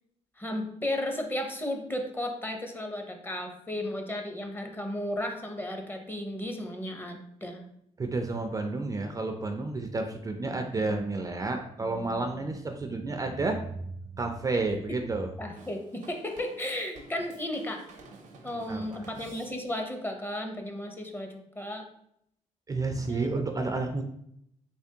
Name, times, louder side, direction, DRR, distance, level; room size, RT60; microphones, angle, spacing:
voice 1, 0.4-7.6 14.9-15.0 15.4-17.8 18.4-21.9 23.1-23.7, left 1 dB, 15° left, 4 dB, 0.6 m, -34 dB
voice 2, 8.0-15.3 18.7-19.1 22.7-24.0, right 3 dB, 30° right, 5 dB, 0.4 m, -31 dB
Drum kit / Drum, 15.6-19.9, right 3 dB, 75° right, 0.6 m, -51 dB
3.4 x 3.2 x 2.8 m, 0.74 s
cardioid pair, 80°, 13 cm